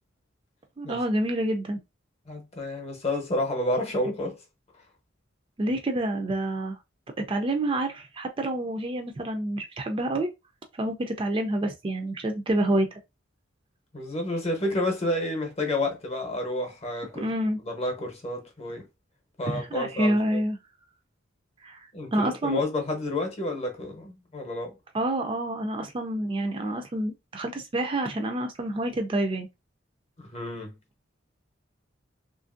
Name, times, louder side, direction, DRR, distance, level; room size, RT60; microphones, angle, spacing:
voice 1, 0.8-1.8 5.6-6.8 7.2-10.3 10.8-13.0 17.2-17.6 19.4-20.6 21.6-22.6 24.9-29.5, right 1 dB, 25° right, 0.3 m, -28 dB
voice 2, 2.3-4.4 13.9-17.3 17.6-18.9 19.4-20.4 21.9-24.8 30.2-30.8, left 1 dB, 35° left, 0.8 m, -30 dB
2.9 x 2.5 x 2.4 m
head